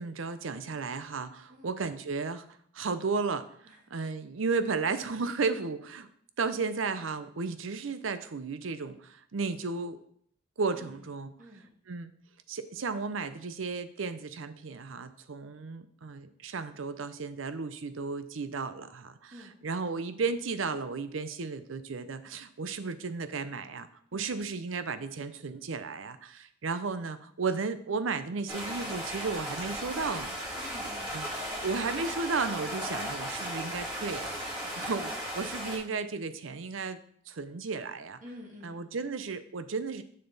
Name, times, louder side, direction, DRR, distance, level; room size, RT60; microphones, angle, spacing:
voice 1, 0.0-2.5 2.7-6.1 6.4-10.0 10.6-11.3 11.9-12.1 12.5-19.3 19.6-30.4 31.1-31.3 31.6-37.0 37.3-38.2 38.6-40.0, right 4 dB, 85° right, 11 dB, 0.6 m, -34 dB
voice 2, 10.7-11.1 11.4-11.7 19.3-19.6 24.1-24.5 30.6-31.2 38.2-38.8, equal, 40° right, 0 dB, 2.0 m, -49 dB
Stream, 28.5-35.8, equal, 25° right, 2.6 m, -36 dB
6.7 x 6.5 x 4.0 m, 0.63 s
head